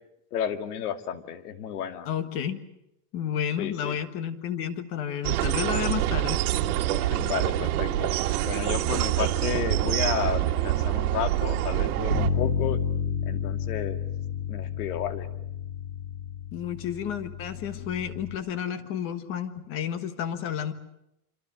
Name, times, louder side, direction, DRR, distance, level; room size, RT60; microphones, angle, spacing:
voice 1, 0.3-2.1 3.6-4.0 6.9-8.1 8.4-12.8 13.3-14.0 14.5-15.3, left 9 dB, 85° left, 7 dB, 2.5 m, -32 dB
voice 2, 2.0-2.6 3.1-6.4 16.5-20.7, left 9 dB, 30° left, 10 dB, 1.5 m, -31 dB
sound 1, 5.2-12.3, right 13 dB, 80° right, 2.2 m, -26 dB
Bass guitar, 12.1-18.4, left 7 dB, 70° left, 3.1 m, -31 dB
27.0 x 26.0 x 6.4 m, 0.83 s
supercardioid pair, 180°, 44 cm